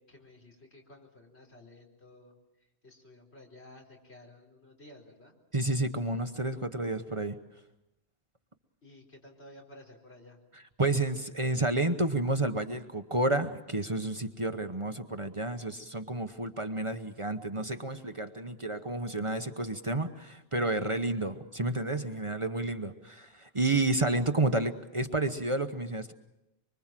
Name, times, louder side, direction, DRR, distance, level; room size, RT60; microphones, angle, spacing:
voice 1, 0.0-2.3 2.8-5.4 8.8-10.4, left 1 dB, 80° left, 0 dB, 4.7 m, -54 dB
voice 2, 5.5-7.4 10.8-26.1, right 2 dB, 30° right, 8 dB, 1.0 m, -30 dB
24.5 x 24.5 x 7.5 m, 0.91 s
omnidirectional pair, 1.1 m